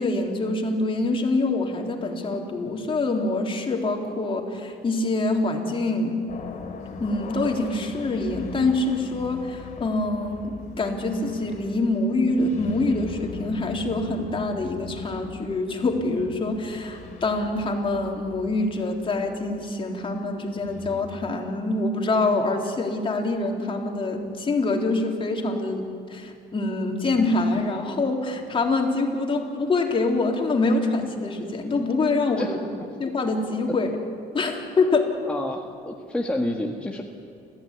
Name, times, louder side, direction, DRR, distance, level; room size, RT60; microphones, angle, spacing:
voice 1, 0.0-6.2 7.0-25.8 26.1-32.6 33.0-33.9 34.3-35.0, left 2 dB, 30° left, 1 dB, 3.7 m, -25 dB
sound 1, 6.3-21.0, left 6 dB, 45° left, 3.1 m, -40 dB
voice 2, 35.3-37.0, left 1 dB, 5° left, 0 dB, 1.7 m, -29 dB
29.5 x 15.0 x 9.8 m, 2.4 s
cardioid pair, 110°, 17 cm